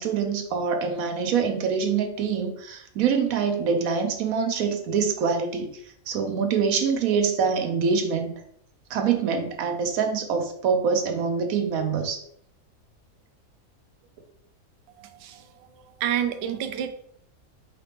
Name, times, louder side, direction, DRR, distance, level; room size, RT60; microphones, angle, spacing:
voice 1, 0.0-5.7 6.1-8.4 8.9-12.2, right 6 dB, 80° right, 6 dB, 1.2 m, -25 dB
voice 2, 15.0-15.4 16.0-16.9, right 10 dB, 65° right, 8 dB, 0.7 m, -28 dB
4.9 x 2.9 x 3.4 m, 0.67 s
omnidirectional pair, 1.4 m